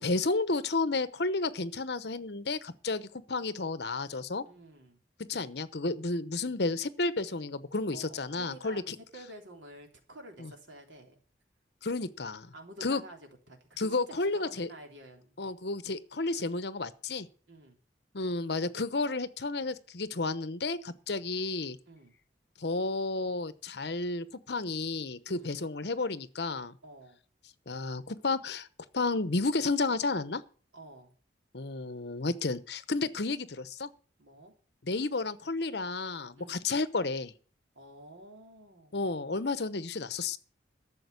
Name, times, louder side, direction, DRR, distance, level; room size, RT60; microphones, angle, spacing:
voice 1, 0.0-4.4 5.3-8.9 10.4-10.5 11.8-12.5 12.8-13.0 13.8-14.7 15.4-17.3 18.1-21.8 22.6-26.7 27.7-28.7 28.9-30.4 31.5-33.9 34.8-37.3 38.9-40.4, left 3 dB, 65° left, 0.9 m, -32 dB
voice 2, 4.4-5.0 7.9-11.1 12.5-15.5 17.5-17.8 21.9-22.1 25.2-25.5 26.8-27.2 30.7-31.1 34.2-34.5 36.3-36.6 37.7-39.0, right 1 dB, 85° right, 3.4 m, -50 dB
12.5 x 7.2 x 8.2 m
head